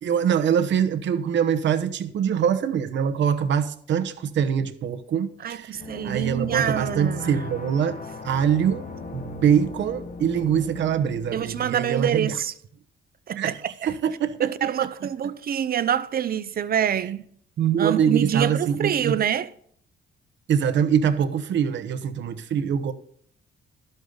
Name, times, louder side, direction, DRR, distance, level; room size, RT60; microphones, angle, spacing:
voice 1, 0.0-8.0 8.2-8.9 9.1-12.4 13.3-14.5 14.8-15.1 17.6-19.2 20.5-22.9, right 8 dB, 65° right, 1.0 m, -24 dB
voice 2, 5.4-7.4 11.3-12.5 13.3-13.5 13.8-13.9 14.4-17.2 17.8-19.5, right 9 dB, 50° right, 0.7 m, -26 dB
sound 1, 5.7-11.7, left 4 dB, 40° left, 1.3 m, -38 dB
11.5 x 8.0 x 3.9 m
cardioid pair, 90°, 20 cm